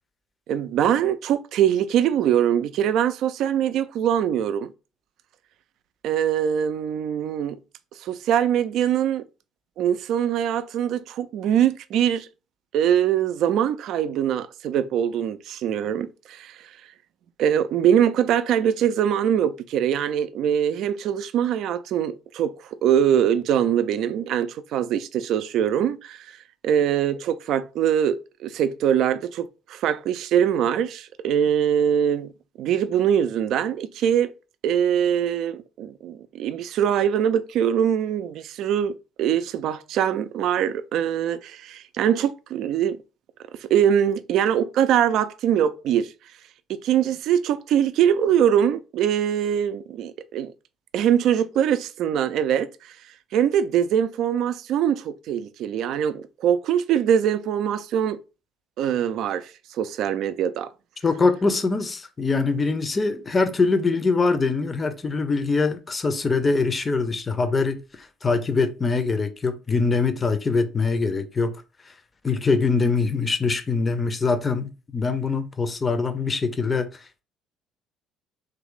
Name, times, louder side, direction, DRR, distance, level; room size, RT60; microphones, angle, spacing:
voice 1, 0.5-4.7 6.0-7.6 8.0-9.2 9.8-12.3 12.7-16.7 17.4-22.5 22.8-26.4 26.6-32.3 32.6-34.3 34.6-43.0 43.6-46.1 46.7-50.5 50.9-53.0 53.3-58.2 58.8-60.7, right 9 dB, 60° right, 0.3 m, -23 dB
voice 2, 61.0-71.6 72.2-77.2, left 4 dB, 30° left, 0.5 m, -23 dB
3.1 x 2.5 x 3.0 m
hypercardioid pair, 55°, 0 cm